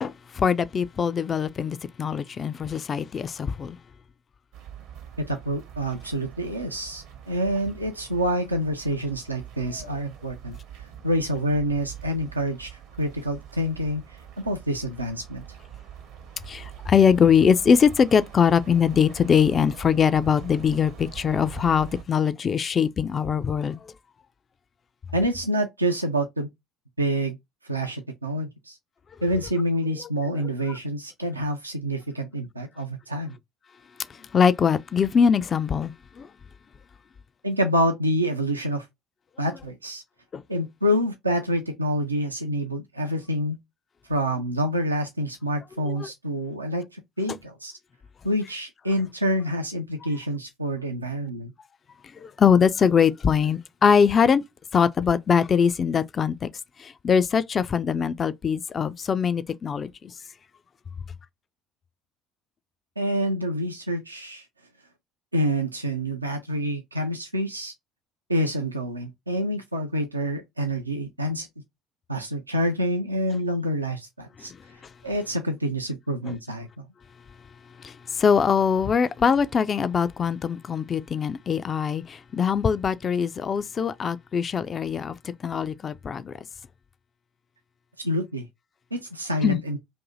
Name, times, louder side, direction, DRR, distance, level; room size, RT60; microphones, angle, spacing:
voice 1, 0.0-3.8 16.5-23.8 34.3-36.3 40.3-40.4 45.9-46.1 52.2-54.4 54.7-56.5 56.8-59.9 77.8-86.3 89.4-89.6, left 7 dB, 35° left, 0.3 m, -22 dB
sound 1, 4.5-22.0, right 9 dB, 60° right, 0.8 m, -44 dB
voice 2, 5.3-10.6 11.0-15.4 25.1-26.5 27.0-27.4 27.6-28.8 29.2-33.4 37.4-38.9 39.4-40.0 40.5-43.6 44.1-47.7 48.2-51.5 63.0-64.5 65.3-67.7 68.3-71.5 72.1-74.5 75.0-76.8 88.0-88.5 88.9-89.8, equal, 85° right, 0.4 m, -27 dB
2.6 x 2.6 x 3.7 m
figure-of-eight pair, 60°, 0 cm